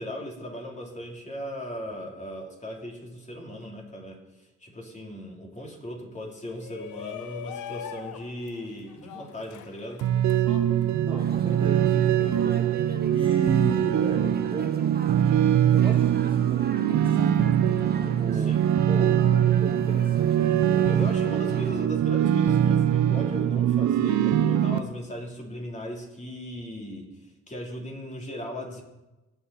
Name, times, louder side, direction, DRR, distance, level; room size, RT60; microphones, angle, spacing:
voice 1, 0.0-10.1 18.3-18.6 20.9-28.8, equal, 25° left, -1 dB, 3.4 m, -38 dB
Shout, 6.4-11.6, left 9 dB, 80° left, 0.8 m, -42 dB
sound 1, 10.0-24.8, right 10 dB, 70° right, 0.8 m, -22 dB
voice 2, 11.1-12.6 13.0-14.9 15.7-17.6 18.2-18.6 18.9-21.1, right 2 dB, 15° right, -1 dB, 1.8 m, -36 dB
sound 2, 11.2-21.9, right 4 dB, 30° right, 1.2 m, -40 dB
18.5 x 7.1 x 4.2 m, 1.0 s
cardioid pair, 90°, 30 cm